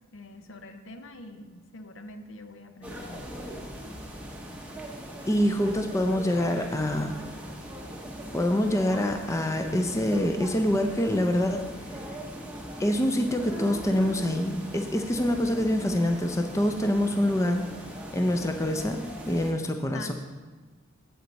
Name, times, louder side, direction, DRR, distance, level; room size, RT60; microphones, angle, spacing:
voice 1, 0.1-3.2 19.9-20.1, left 2 dB, 65° left, 8 dB, 0.6 m, -44 dB
sound 1, 2.8-19.5, equal, 5° right, 0.8 m, -40 dB
voice 2, 5.3-7.2 8.3-11.7 12.8-17.7 18.1-20.1, left 1 dB, 15° left, 5 dB, 0.4 m, -25 dB
7.9 x 7.9 x 4.0 m, 1.3 s
head